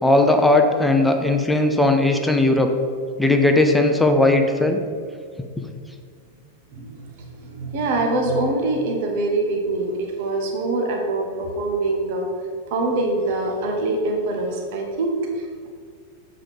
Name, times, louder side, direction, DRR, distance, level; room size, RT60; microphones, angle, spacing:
voice 1, 0.0-2.7 3.2-4.8, left 2 dB, 5° left, 4 dB, 0.6 m, -17 dB
voice 2, 6.7-12.3 12.7-15.7, right 2 dB, 50° right, 1 dB, 1.1 m, -24 dB
7.3 x 3.8 x 5.1 m, 2.1 s
figure-of-eight pair, 90°, 0 cm